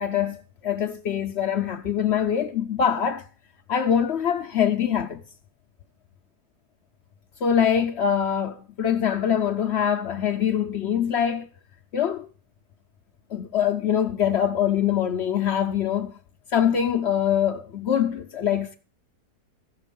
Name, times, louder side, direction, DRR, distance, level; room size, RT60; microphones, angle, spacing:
voice 1, 0.0-3.3 3.7-5.2 7.4-11.5 11.9-12.3 13.3-16.2 16.5-18.8, left 8 dB, 60° left, 0.7 m, -24 dB
14.5 x 6.7 x 5.2 m
omnidirectional pair, 1.7 m